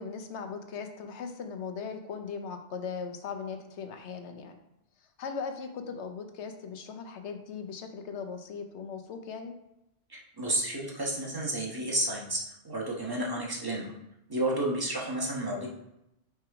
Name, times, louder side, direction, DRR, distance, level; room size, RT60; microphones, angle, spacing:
voice 1, 0.0-4.6 5.2-9.5, left 5 dB, 75° left, 6 dB, 1.0 m, -38 dB
voice 2, 10.1-13.9 14.3-15.7, right 1 dB, 20° right, -3 dB, 1.2 m, -31 dB
5.9 x 3.5 x 4.8 m, 0.84 s
omnidirectional pair, 1.2 m